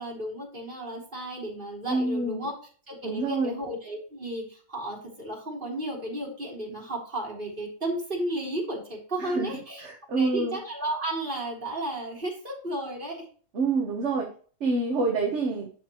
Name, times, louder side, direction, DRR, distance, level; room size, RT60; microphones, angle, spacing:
voice 1, 0.0-2.5 2.9-13.3, right 1 dB, 40° right, -3 dB, 3.6 m, -33 dB
voice 2, 1.9-2.4 3.0-3.5 9.2-9.5 9.8-10.6 13.5-14.3 14.6-15.7, right 3 dB, 55° right, 1 dB, 1.5 m, -27 dB
11.0 x 6.6 x 3.1 m, 0.42 s
omnidirectional pair, 1.4 m